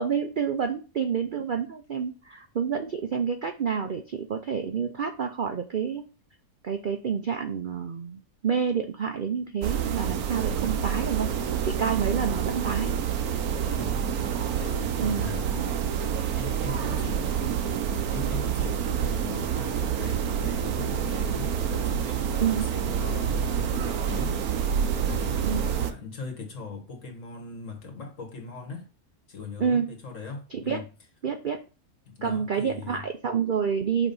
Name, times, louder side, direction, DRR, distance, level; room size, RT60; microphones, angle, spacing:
voice 1, 0.0-6.0 6.6-11.3 11.6-12.9 15.0-15.3 22.4-22.7 25.4-25.7 29.6-29.9 30.5-30.8 31.2-31.6 32.2-34.1, right 6 dB, 55° right, 0.5 m, -28 dB
sound 1, 9.6-25.9, right 8 dB, 85° right, 1.3 m, -28 dB
voice 2, 13.6-15.8 16.4-28.9 29.3-30.9 32.1-33.1, left 4 dB, 60° left, 1.8 m, -40 dB
5.9 x 4.2 x 5.3 m
omnidirectional pair, 1.5 m